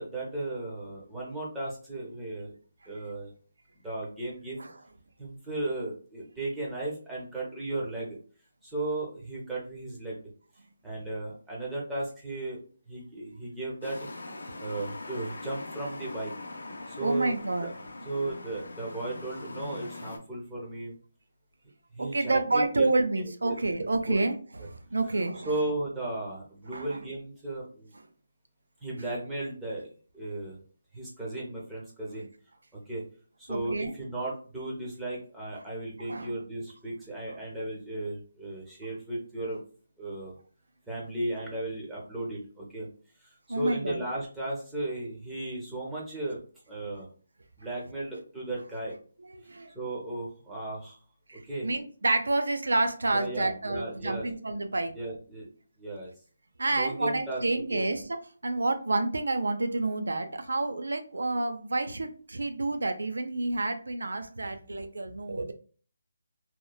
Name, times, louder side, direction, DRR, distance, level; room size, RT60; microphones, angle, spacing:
voice 1, 0.0-2.5 2.9-3.3 3.8-4.6 5.2-8.2 8.6-10.2 10.8-12.6 12.9-14.0 14.6-16.3 16.9-17.4 17.6-17.7 18.0-21.0 21.9-22.9 23.2-23.6 24.1-24.2 25.4-27.9 28.8-29.9 30.1-30.6 30.9-32.3 32.7-33.0 33.4-39.6 40.0-40.3 40.9-42.9 43.2-46.4 46.7-47.1 47.6-49.0 49.7-51.0 51.4-51.7 53.1-54.3 54.9-55.5 55.8-56.1 56.7-57.4 57.7-57.9, right 2 dB, 5° right, -5 dB, 0.5 m, -35 dB
sound 1, 13.8-20.2, left 2 dB, 80° left, 0.5 m, -42 dB
voice 2, 17.0-17.7 22.0-25.5 26.7-27.0 33.5-33.9 36.1-36.3 43.5-44.0 49.2-49.7 51.3-54.9 56.6-65.5, right 2 dB, 90° right, 8 dB, 0.4 m, -29 dB
2.9 x 2.1 x 2.2 m, 0.41 s
hypercardioid pair, 175°, 0 cm